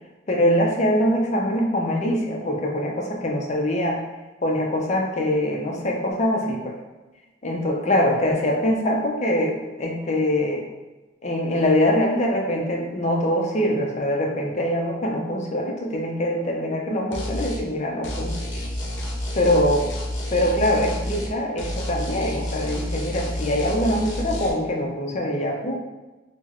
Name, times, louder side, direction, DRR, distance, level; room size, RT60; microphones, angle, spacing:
voice 1, 0.3-4.0 4.4-6.7 7.4-10.6 11.2-18.4 19.4-19.8 20.3-25.7, left 1 dB, 40° left, 0 dB, 0.6 m, -23 dB
sound 1, 17.1-17.6 18.0-21.3 21.6-24.5, left 1 dB, 80° left, 0.7 m, -29 dB
3.3 x 2.1 x 3.6 m, 1.1 s
head